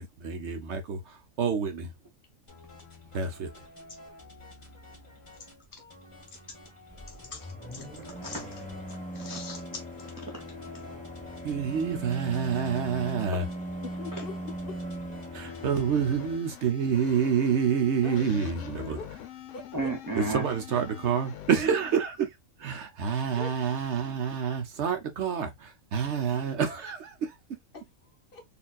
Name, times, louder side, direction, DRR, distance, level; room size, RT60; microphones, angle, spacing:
voice 1, 0.0-1.9 3.1-3.5 11.4-13.5 15.3-19.0 20.2-22.3 22.6-27.3, right 7 dB, 60° right, 1.0 m, -28 dB
sound 1, 2.5-16.2, left 2 dB, 25° left, 1.7 m, -51 dB
sound 2, 6.9-16.4, right 1 dB, 5° left, 0.9 m, -39 dB
voice 2, 8.2-8.7 9.1-9.8 10.2-10.3 19.7-20.5, right 1 dB, 20° right, 0.5 m, -34 dB
voice 3, 13.8-14.7 18.0-19.3 19.5-20.2 23.3-23.5 27.7-28.4, left 5 dB, 45° left, 0.9 m, -43 dB
sound 3, 15.5-22.0, left 11 dB, 70° left, 1.0 m, -45 dB
4.2 x 2.8 x 2.3 m
omnidirectional pair, 1.4 m